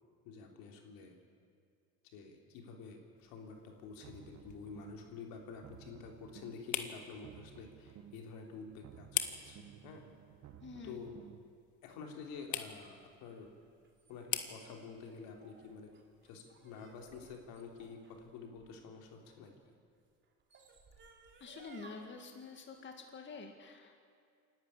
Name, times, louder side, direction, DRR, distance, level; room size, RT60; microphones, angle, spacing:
voice 1, 0.3-1.2 2.1-9.1 9.5-10.1 10.8-11.2 11.8-13.5 14.1-15.9 16.2-19.7, left 5 dB, 75° left, 2 dB, 3.5 m, -49 dB
sound 1, 3.2-18.0, left 10 dB, 55° left, 1.6 m, -46 dB
sound 2, 3.9-5.2 5.5-6.8 7.1-8.4 8.7-11.5, right 10 dB, 50° right, 1.1 m, -56 dB
voice 2, 10.6-11.0 21.4-24.0, left 4 dB, 35° left, 3 dB, 2.1 m, -48 dB
sound 3, 13.3-19.5 20.2-22.0, right 4 dB, 30° right, 3.2 m, -61 dB
27.0 x 12.0 x 9.7 m, 2.3 s
cardioid pair, 125°, 35 cm